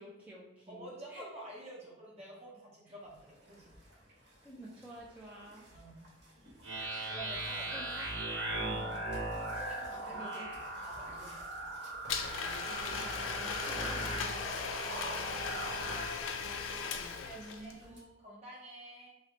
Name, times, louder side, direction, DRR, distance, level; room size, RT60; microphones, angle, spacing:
voice 1, 0.0-1.3 2.9-3.0 4.1-5.6 7.7-8.1 8.6-8.9 10.1-10.5 12.7-14.6 17.3-18.0, right 1 dB, 10° right, -6 dB, 0.4 m, -50 dB
voice 2, 0.7-3.7 5.7-6.1 7.0-7.7 8.8-9.1 9.5-11.5 14.9-16.5 17.1-19.1, right 1 dB, 35° right, -4 dB, 1.0 m, -50 dB
sound 1, 3.0-18.0, right 1 dB, 60° right, 1.1 m, -57 dB
sound 2, 6.6-16.1, right 1 dB, 80° right, 0.9 m, -39 dB
Domestic sounds home sounds, 12.1-17.7, left 6 dB, 85° left, 0.4 m, -38 dB
3.1 x 2.0 x 3.8 m, 0.96 s
head